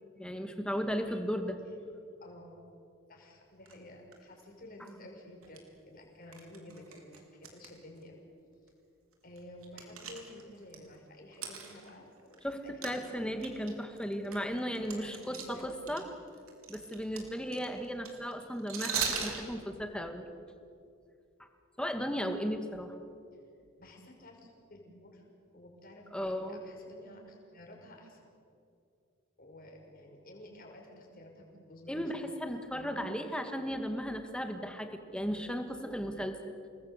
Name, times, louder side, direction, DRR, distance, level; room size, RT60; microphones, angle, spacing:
voice 1, 0.2-1.6 12.4-16.0 16.7-20.3 21.4-21.5 21.8-22.9 26.1-26.6 31.9-36.6, equal, 5° left, 6 dB, 1.9 m, -36 dB
voice 2, 2.2-2.6 3.1-8.2 9.2-13.5 14.7-15.9 23.3-23.4 23.8-25.3 25.5-28.3 29.4-32.3 32.7-33.1, left 1 dB, 45° left, 0 dB, 5.9 m, -52 dB
sound 1, 3.7-3.8 4.1-4.4 4.9-5.0 5.4-5.6 6.3-7.7 8.0-8.1 8.7-8.8 9.1-10.8 11.3-12.5 12.8-13.0 13.3-16.0 16.3-19.4, right 6 dB, 75° right, 3.9 m, -38 dB
29.0 x 20.5 x 8.2 m, 2.5 s
head